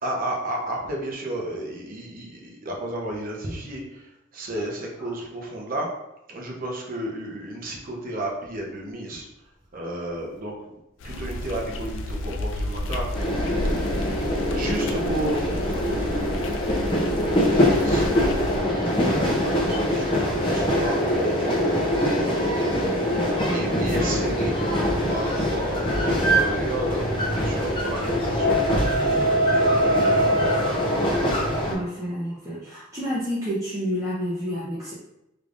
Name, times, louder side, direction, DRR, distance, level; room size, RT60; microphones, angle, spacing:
voice 1, 0.0-5.9 6.3-9.3 9.7-10.8 11.0-13.1 13.6-13.8 14.5-24.6 24.9-30.8, right 1 dB, 45° right, -1 dB, 0.8 m, -33 dB
sound 1, 11.0-18.6, left 1 dB, 75° left, 0.4 m, -31 dB
sound 2, 13.1-31.7, equal, 25° left, 0.6 m, -23 dB
voice 2, 22.8-24.1 25.4-25.5 31.7-34.9, equal, 15° right, -10 dB, 0.9 m, -30 dB
3.4 x 3.3 x 2.5 m, 0.87 s
head